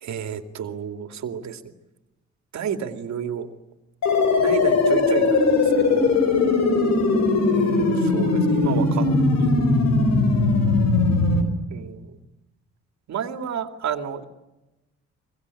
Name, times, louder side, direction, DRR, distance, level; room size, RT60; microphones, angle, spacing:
voice 1, 0.0-1.6 2.5-3.5 4.4-6.1 7.5-9.1 9.4-9.6 11.7-12.1 13.1-14.2, right 8 dB, 65° right, 8 dB, 2.6 m, -31 dB
sound 1, 4.0-11.4, left 3 dB, 65° left, 5.3 m, -19 dB
24.5 x 23.5 x 9.8 m, 1.0 s
cardioid pair, 90°, 30 cm